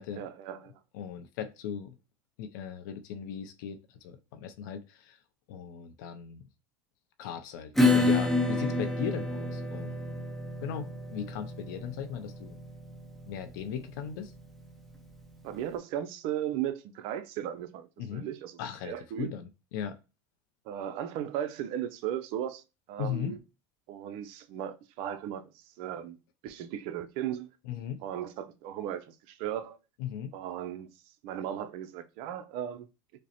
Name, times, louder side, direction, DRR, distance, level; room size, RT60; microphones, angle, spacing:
voice 1, 0.2-0.8 15.4-19.3 20.7-22.6 22.9-23.4 23.9-26.2 26.4-27.5 28.0-29.8 30.3-30.9 31.2-32.9, right 10 dB, 60° right, 0.5 m, -36 dB
voice 2, 0.9-1.9 2.4-5.2 5.5-6.4 7.2-10.2 10.6-12.6 13.3-14.3 18.0-18.3 18.6-20.0 23.0-23.3 27.7-28.0 30.0-30.4, left 8 dB, 80° left, 0.5 m, -38 dB
Acoustic guitar / Strum, 7.8-15.0, left 2 dB, ahead, 0.7 m, -29 dB
5.0 x 2.1 x 2.8 m
supercardioid pair, 120°, 10 cm